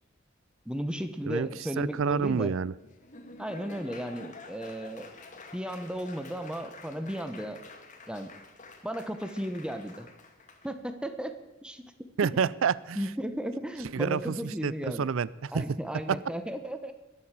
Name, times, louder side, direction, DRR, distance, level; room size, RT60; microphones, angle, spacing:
voice 1, 0.6-2.5 3.4-5.1 5.5-7.6 8.1-8.3 8.8-10.1 10.6-11.8 12.2-12.4 13.0-15.1 15.5-16.9, equal, 5° right, 8 dB, 1.2 m, -35 dB
voice 2, 1.8-2.7 12.2-13.0 13.9-15.7 16.1-16.2, right 6 dB, 90° right, 21 dB, 0.4 m, -28 dB
Laughter / Applause, 2.8-10.7, left 3 dB, 40° left, 2.1 m, -49 dB
21.5 x 8.2 x 7.6 m, 1.1 s
head